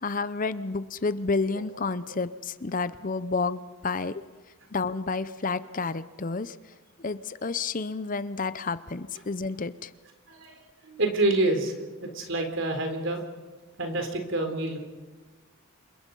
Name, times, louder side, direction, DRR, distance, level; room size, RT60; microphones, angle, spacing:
voice 1, 0.0-4.2 4.7-6.6 7.0-9.9, left 4 dB, 40° left, 14 dB, 0.7 m, -30 dB
voice 2, 10.3-10.6 10.8-11.7 12.0-13.2 13.8-14.8, right 2 dB, 60° right, 5 dB, 3.9 m, -27 dB
28.0 x 23.0 x 5.5 m, 1.4 s
head